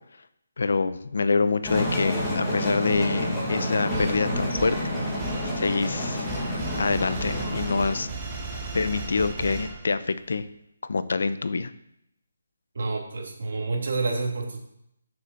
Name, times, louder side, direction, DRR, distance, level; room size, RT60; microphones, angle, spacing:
voice 1, 0.6-4.8 5.6-6.3 6.8-8.1 8.7-10.5 10.9-11.7, left 4 dB, 70° left, 12 dB, 0.7 m, -26 dB
sound 1, 1.6-8.1, left 1 dB, 5° left, 2.2 m, -29 dB
sound 2, 3.9-10.2, right 3 dB, 20° right, 1.4 m, -36 dB
voice 2, 12.7-14.7, right 3 dB, 60° right, 1 dB, 2.7 m, -29 dB
7.0 x 6.6 x 6.7 m, 0.78 s
hypercardioid pair, 165°, 0 cm